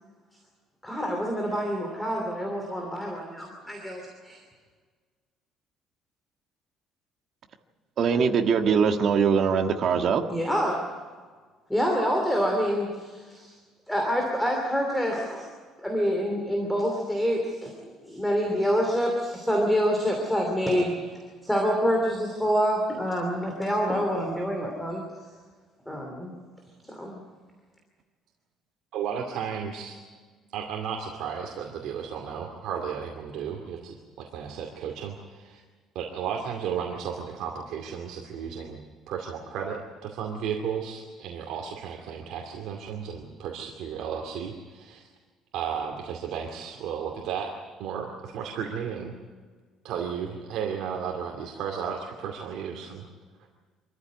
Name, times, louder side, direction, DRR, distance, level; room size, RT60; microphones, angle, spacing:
voice 1, 0.8-4.4 10.3-10.9 11.7-13.6 13.9-15.5 15.8-21.1 21.4-25.0 25.9-26.3 26.8-27.2, equal, 5° left, 1 dB, 2.8 m, -27 dB
voice 2, 8.0-10.2, right 6 dB, 40° right, 5 dB, 1.7 m, -22 dB
voice 3, 28.9-30.0 30.5-35.6 35.9-38.8 39.1-45.1 45.5-47.5 47.8-49.1 49.8-53.0, right 7 dB, 65° right, 1 dB, 2.5 m, -34 dB
25.5 x 14.5 x 9.6 m, 1.5 s
cardioid pair, 170°, 0 cm